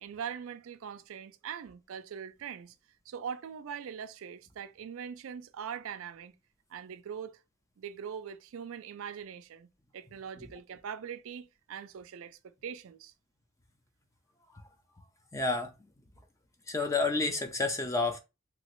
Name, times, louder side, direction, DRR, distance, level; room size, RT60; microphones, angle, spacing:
voice 1, 0.0-2.7 3.1-6.3 6.7-7.4 7.8-9.7 9.9-13.1, right 7 dB, 65° right, 0.3 m, -42 dB
voice 2, 15.3-15.7 16.7-18.2, left 3 dB, 15° left, 0.4 m, -29 dB
3.0 x 2.8 x 3.0 m
head